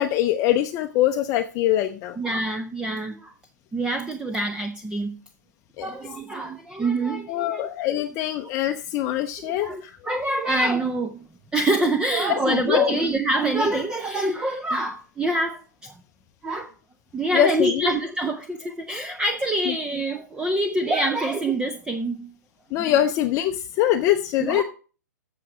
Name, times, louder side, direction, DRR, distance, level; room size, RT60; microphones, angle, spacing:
voice 1, 0.0-2.2 5.8-5.9 7.3-10.0 12.3-13.0 17.3-17.9 19.7-19.8 22.7-24.6, left 12 dB, 35° left, 6 dB, 0.7 m, -23 dB
voice 2, 2.2-3.3 3.7-5.2 5.8-7.7 9.4-11.2 11.5-15.9 16.4-16.7 17.1-22.3 22.8-22.9 24.4-24.6, right 2 dB, 10° right, 7 dB, 0.7 m, -25 dB
8.4 x 6.7 x 6.2 m, 0.36 s
hypercardioid pair, 120°, 10 cm